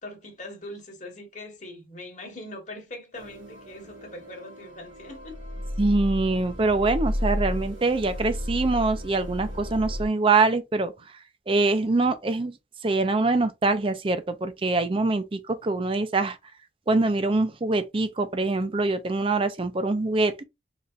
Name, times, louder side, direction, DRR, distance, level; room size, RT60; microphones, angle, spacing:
voice 1, 0.0-5.3, left 1 dB, 40° left, 1.2 m, -41 dB
sound 1, 3.1-10.1, equal, 75° right, 1.9 m, -33 dB
voice 2, 5.8-10.9 11.5-12.5 12.8-16.4 16.9-20.3, right 3 dB, 25° right, 0.4 m, -24 dB
4.0 x 3.2 x 2.4 m
head